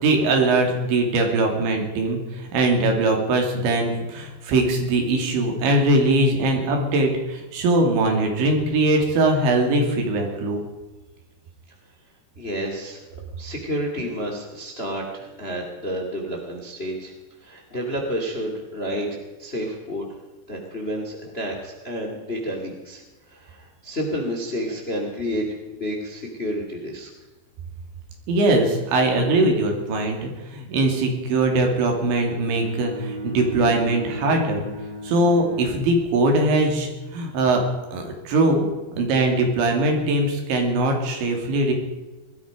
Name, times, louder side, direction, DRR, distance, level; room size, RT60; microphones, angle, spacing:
voice 1, 0.0-10.6 28.3-34.7 35.0-37.6 37.9-38.7 39.0-41.7, right 2 dB, 85° right, 2 dB, 5.1 m, -21 dB
voice 2, 12.4-13.0 13.4-17.1 17.4-20.1 20.5-23.0 23.3-25.5 25.7-27.1, equal, 25° left, 1 dB, 1.5 m, -30 dB
Bowed string instrument, 32.3-36.5, right 1 dB, 25° right, 2.6 m, -35 dB
19.5 x 13.5 x 5.1 m, 1.1 s
omnidirectional pair, 5.1 m